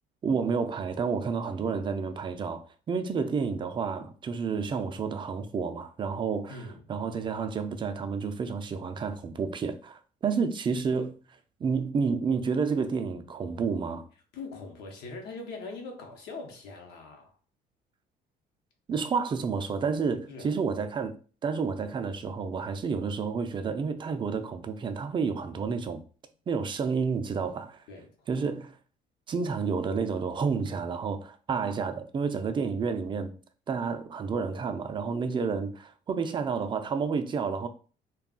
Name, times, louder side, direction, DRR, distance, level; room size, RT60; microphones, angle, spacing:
voice 1, 0.2-6.5 6.9-11.1 11.6-14.1 18.9-21.1 21.4-26.0 26.5-27.8 28.3-28.8 29.3-33.3 33.7-37.7, right 5 dB, 30° right, 0.4 m, -30 dB
voice 2, 6.5-6.8 14.3-17.4 20.3-20.6 27.9-28.3, left 3 dB, 85° left, 0.9 m, -42 dB
2.3 x 2.3 x 3.6 m
cardioid pair, 110°, 17 cm